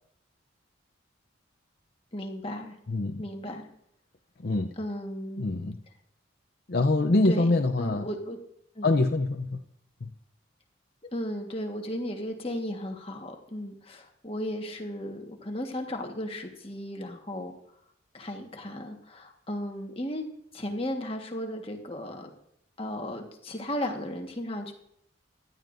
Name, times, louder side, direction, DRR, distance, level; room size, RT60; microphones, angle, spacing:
voice 1, 2.1-2.7 3.2-3.7 4.8-5.6 7.2-7.5 7.8-8.4 8.7-8.9 11.0-17.5 18.1-20.3 20.5-22.3 22.8-24.7, left 1 dB, 30° left, 3 dB, 1.5 m, -35 dB
voice 2, 2.9-3.2 4.4-4.7 5.4-5.8 6.7-8.1 8.8-9.6 10.0-10.1, left 2 dB, 50° left, 3 dB, 0.6 m, -25 dB
16.5 x 12.0 x 2.6 m, 0.72 s
head